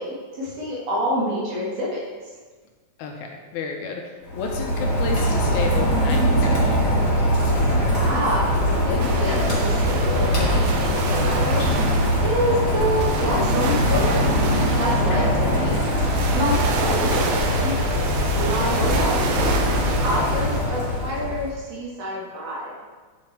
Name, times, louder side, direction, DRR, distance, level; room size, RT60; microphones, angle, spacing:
voice 1, 0.0-2.0 7.9-11.7 12.2-14.3 14.7-15.7 16.3-17.7 18.3-19.2 20.0-22.8, equal, 60° right, -5 dB, 2.5 m, -27 dB
voice 2, 3.0-7.0 16.5-16.7, left 5 dB, 80° left, 2 dB, 2.0 m, -31 dB
Rain, 4.2-21.5, equal, 35° left, 2.2 m, -22 dB
sound 1, 9.0-20.6, right 5 dB, 75° right, 1.8 m, -30 dB
9.2 x 4.2 x 4.4 m, 1.4 s
omnidirectional pair, 3.6 m